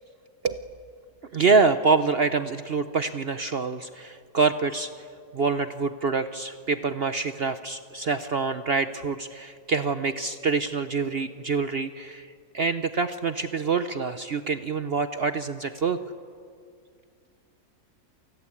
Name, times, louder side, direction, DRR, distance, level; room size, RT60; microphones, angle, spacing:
voice 1, 1.3-4.9 5.3-12.3 12.5-16.0, right 4 dB, 50° right, 10 dB, 0.8 m, -26 dB
28.5 x 19.5 x 8.5 m, 2.2 s
omnidirectional pair, 1.7 m